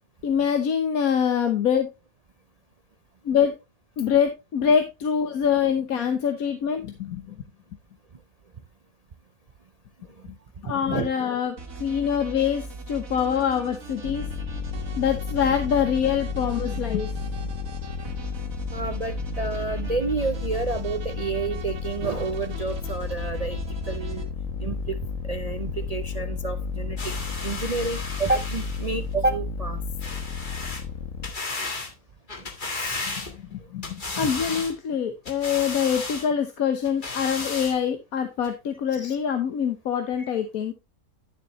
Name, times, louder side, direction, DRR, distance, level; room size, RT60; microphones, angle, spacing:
voice 1, 0.2-1.9 3.2-3.5 4.0-7.3 10.6-14.3 15.0-17.4 33.1-33.2 33.5-40.7, left 8 dB, 80° left, 7 dB, 1.4 m, -25 dB
sound 1, 11.6-24.2, right 2 dB, 70° right, 2.1 m, -40 dB
sound 2, 14.0-31.3, left 5 dB, 65° left, 1.6 m, -32 dB
voice 2, 18.7-23.6 23.9-24.3 24.6-25.0 25.2-27.1 27.4-29.8 32.4-33.0 34.2-34.5 38.9-39.2 40.2-40.3, right 3 dB, 50° right, 8 dB, 0.4 m, -30 dB
sound 3, 27.0-28.9 30.0-30.8 31.2-31.9 32.3-33.5 33.8-34.7 35.2-36.3 36.8-37.8 38.4-38.5, left 3 dB, 35° left, 1.8 m, -34 dB
11.5 x 7.0 x 3.1 m, 0.24 s
omnidirectional pair, 1.5 m